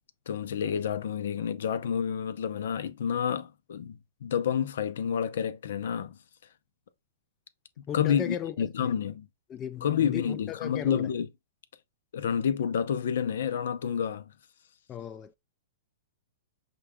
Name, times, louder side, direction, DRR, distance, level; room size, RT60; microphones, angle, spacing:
voice 1, 0.3-6.2 7.9-9.3 9.8-11.3 12.1-14.2, left 8 dB, 75° left, 0.6 m, -29 dB
voice 2, 7.9-8.9 9.5-11.1 14.9-15.3, left 9 dB, 20° left, 0.3 m, -36 dB
5.8 x 2.3 x 3.5 m
hypercardioid pair, 140°, 0 cm